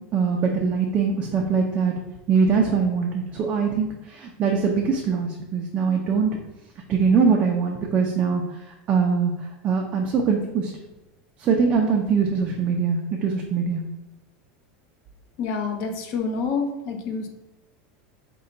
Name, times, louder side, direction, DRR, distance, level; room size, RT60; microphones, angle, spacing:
voice 1, 0.1-1.9 2.3-6.4 6.9-8.4 8.9-9.3 9.6-10.7 11.4-13.8, right 5 dB, 25° right, 0 dB, 0.4 m, -22 dB
voice 2, 15.4-17.3, left 5 dB, 45° left, 4 dB, 0.7 m, -27 dB
5.2 x 2.2 x 3.8 m, 1.0 s
supercardioid pair, 170°, 5 cm